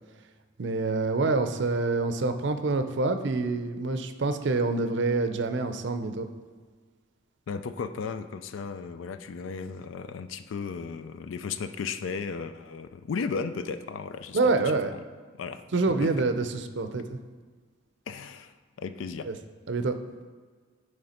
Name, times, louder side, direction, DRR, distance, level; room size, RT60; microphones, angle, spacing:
voice 1, 0.6-6.3 14.3-14.9 15.7-17.2 19.3-19.4 19.7-19.9, right 3 dB, 65° right, 9 dB, 0.5 m, -26 dB
voice 2, 7.5-14.7 15.4-15.6 16.0-16.2 18.1-19.3, left 5 dB, 85° left, 10 dB, 0.4 m, -35 dB
9.1 x 3.3 x 4.3 m, 1.5 s
head